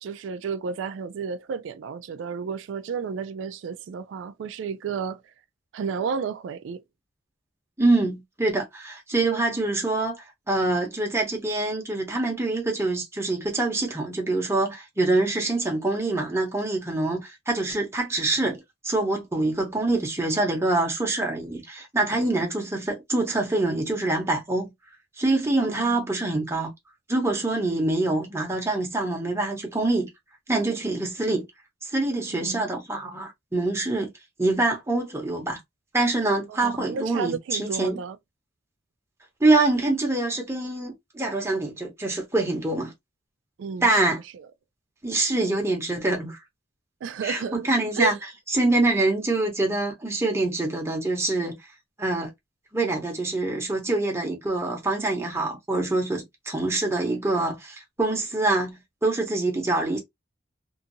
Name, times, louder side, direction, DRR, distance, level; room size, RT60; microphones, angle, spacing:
voice 1, 0.0-5.2 5.7-6.8 25.6-26.0 32.3-32.6 36.5-38.2 43.6-44.5 47.0-47.7 48.0-48.2, right 6 dB, 90° right, 0.3 m, -32 dB
voice 2, 7.8-24.7 25.2-26.7 27.1-30.1 30.5-31.4 31.8-34.1 34.4-35.6 35.9-38.0 39.4-42.9 43.8-44.2 45.0-46.4 47.2-48.2 48.5-51.6 52.0-52.3 52.7-60.0, right 2 dB, 15° right, 0.9 m, -25 dB
2.7 x 2.5 x 2.6 m
head